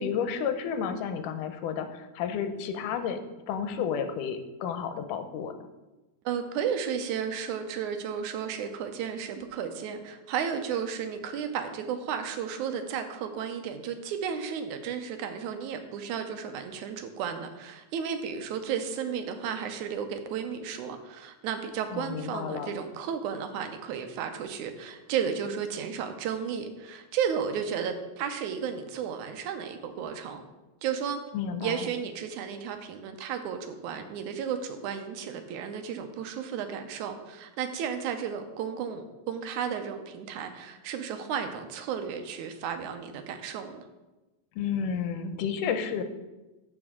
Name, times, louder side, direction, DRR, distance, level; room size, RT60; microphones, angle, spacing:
voice 1, 0.0-3.2 3.5-5.7 21.9-22.7 31.3-31.9 44.6-46.0, left 7 dB, 80° left, 8 dB, 2.2 m, -31 dB
voice 2, 6.3-30.4 30.8-31.2 31.6-43.8, right 7 dB, 75° right, 7 dB, 2.0 m, -33 dB
14.0 x 5.1 x 3.7 m, 1.1 s
omnidirectional pair, 3.6 m